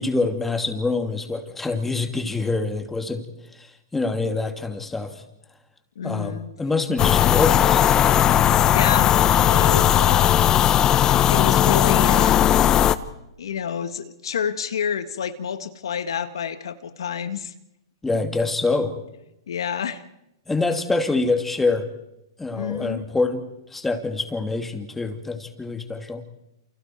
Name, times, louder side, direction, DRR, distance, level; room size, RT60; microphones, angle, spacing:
voice 1, 0.0-3.2 3.5-5.2 6.0-7.8 18.0-19.0 20.5-21.9 22.4-23.4 23.7-26.2, left 3 dB, 10° left, 6 dB, 2.7 m, -25 dB
voice 2, 5.9-6.5 8.7-9.1 9.4-12.5 13.4-17.5 19.5-20.0 22.5-23.0, left 7 dB, 75° left, 10 dB, 1.6 m, -29 dB
sound 1, 7.0-13.0, left 10 dB, 25° left, 1.1 m, -17 dB
30.0 x 28.5 x 4.6 m, 0.87 s
hypercardioid pair, 125°, 3 cm